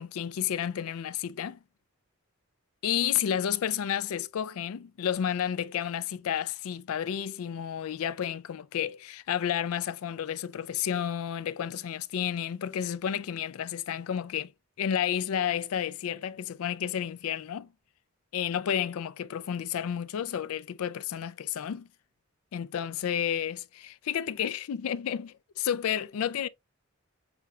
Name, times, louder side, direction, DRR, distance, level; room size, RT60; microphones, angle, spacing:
voice 1, 0.0-1.6 2.8-14.5 14.8-17.7 18.3-21.9 22.5-26.5, left 9 dB, 75° left, 0.3 m, -31 dB
6.8 x 2.3 x 2.7 m
head